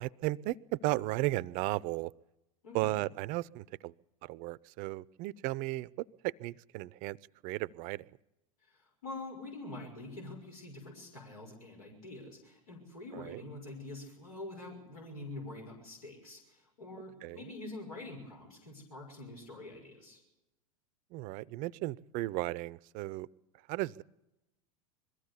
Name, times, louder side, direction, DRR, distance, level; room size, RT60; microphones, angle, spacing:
voice 1, 0.0-2.1 2.7-3.9 4.2-5.9 6.2-7.2 7.4-8.1 13.1-13.4 17.2-17.4 21.1-23.3 23.7-24.0, right 18 dB, 45° right, 21 dB, 0.6 m, -35 dB
voice 2, 2.6-3.1 8.6-20.2, left 2 dB, 80° left, 1 dB, 6.1 m, -46 dB
22.0 x 15.5 x 8.3 m, 0.91 s
hypercardioid pair, 90°, 18 cm